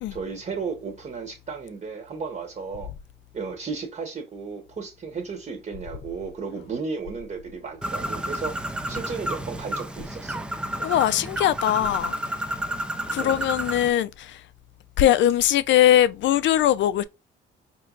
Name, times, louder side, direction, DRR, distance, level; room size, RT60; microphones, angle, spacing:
voice 1, 0.1-2.9 3.3-10.4 13.2-13.5, right 5 dB, 40° right, 0.9 m, -34 dB
Bird, 7.8-13.9, right 1 dB, 5° right, 0.4 m, -31 dB
voice 2, 10.8-12.1 13.1-14.4 15.0-17.0, left 12 dB, 70° left, 0.4 m, -21 dB
4.4 x 3.0 x 2.3 m
cardioid pair, 90°, 20 cm